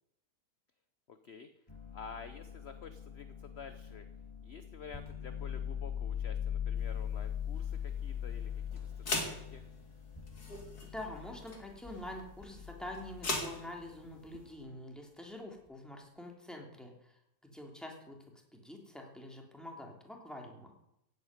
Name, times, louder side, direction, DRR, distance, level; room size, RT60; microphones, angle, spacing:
voice 1, 1.1-1.5 1.9-4.1 4.4-9.6, left 5 dB, 45° left, 9 dB, 1.1 m, -50 dB
sound 1, 1.7-13.5 14.3-14.7, left 9 dB, 20° left, 2.0 m, -41 dB
sound 2, 6.8-14.5, left 2 dB, 75° left, 3.2 m, -42 dB
voice 2, 10.8-17.1 17.4-18.2 18.5-20.7, left 1 dB, ahead, 1 dB, 3.2 m, -46 dB
15.5 x 9.1 x 9.6 m, 0.82 s
omnidirectional pair, 1.7 m